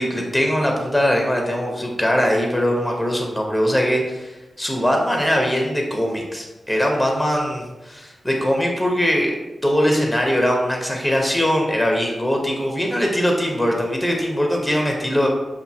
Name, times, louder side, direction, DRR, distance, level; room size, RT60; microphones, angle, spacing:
voice 1, 0.0-9.4 9.6-15.3, equal, 5° left, 1 dB, 0.6 m, -21 dB
5.9 x 2.5 x 2.7 m, 1.1 s
wide cardioid pair, 135°, 0 cm